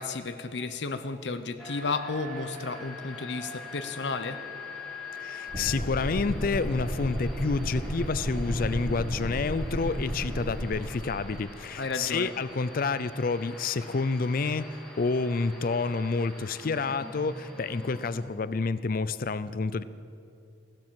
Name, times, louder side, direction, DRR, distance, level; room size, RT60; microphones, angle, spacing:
voice 1, 0.0-4.4 11.8-12.3, left 4 dB, 75° left, 9 dB, 0.8 m, -33 dB
sound 1, 1.6-18.1, left 2 dB, 5° left, 2.9 m, -44 dB
voice 2, 5.1-19.8, left 4 dB, 50° left, 15 dB, 0.5 m, -29 dB
sound 2, 5.5-10.7, equal, 40° right, 3.6 m, -33 dB
16.0 x 12.0 x 7.5 m, 2.5 s
head